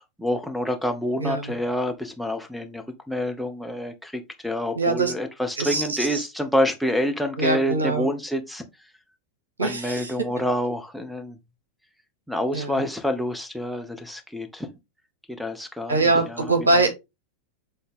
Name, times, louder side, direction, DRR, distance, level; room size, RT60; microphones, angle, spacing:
voice 1, 0.0-8.6 9.6-11.4 12.3-14.7 15.3-16.8, equal, ahead, 1.0 m, -27 dB
voice 2, 1.2-1.5 4.8-5.1 5.6-6.2 7.4-8.1 9.6-10.3 12.5-12.8 15.9-16.9, right 3 dB, 75° right, 2.0 m, -23 dB
7.9 x 3.9 x 3.7 m
figure-of-eight pair, 90°, 0 cm